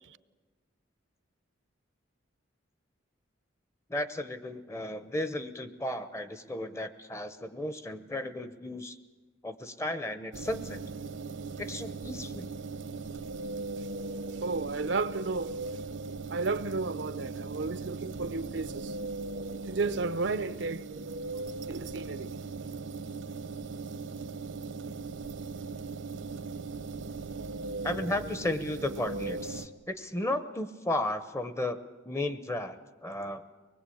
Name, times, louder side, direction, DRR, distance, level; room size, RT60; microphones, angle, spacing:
voice 1, 3.9-9.0 9.4-10.8 11.6-12.5 19.5-19.6 27.8-31.8 32.0-33.4, left 1 dB, 15° left, 0.8 m, -34 dB
sound 1, 10.3-29.7, right 3 dB, 80° right, 1.0 m, -39 dB
voice 2, 14.3-15.6 16.3-19.0 19.7-20.9 21.7-22.3, right 3 dB, 65° right, 0.6 m, -33 dB
24.0 x 20.0 x 8.6 m
head